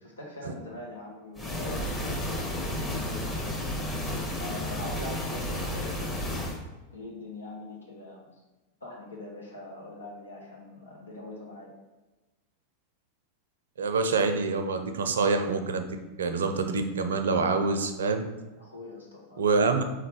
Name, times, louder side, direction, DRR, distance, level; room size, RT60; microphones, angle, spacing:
voice 1, 0.0-3.9 4.4-6.5 6.9-8.4 8.8-11.7 18.6-19.4, left 2 dB, 85° left, -2 dB, 1.1 m, -43 dB
sound 1, 1.4-6.6, left 1 dB, 20° left, 1.1 m, -32 dB
voice 2, 13.8-15.9 16.2-18.3 19.4-19.8, right 4 dB, 75° right, 7 dB, 0.5 m, -26 dB
3.7 x 3.2 x 4.5 m, 1.1 s
hypercardioid pair, 90°, 0 cm